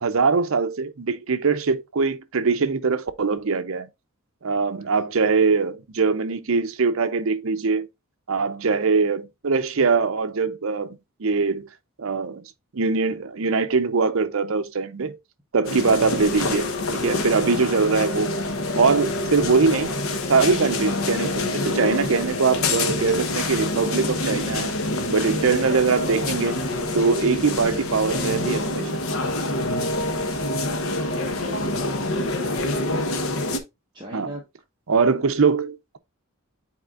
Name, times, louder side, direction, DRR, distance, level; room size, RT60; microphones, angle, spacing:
voice 1, 0.0-3.9 4.4-7.9 8.3-11.7 12.0-12.4 12.7-15.2 15.5-16.7 17.0-18.3 18.8-24.7 25.1-26.5 26.9-29.0 34.1-34.3 34.9-36.0, right 4 dB, 65° right, 0.6 m, -22 dB
sound 1, 15.6-33.6, left 2 dB, 65° left, 0.9 m, -26 dB
voice 2, 30.1-30.5 31.0-31.7 33.9-34.4 34.9-35.3, right 1 dB, 20° right, 1.1 m, -41 dB
9.3 x 4.3 x 2.4 m
head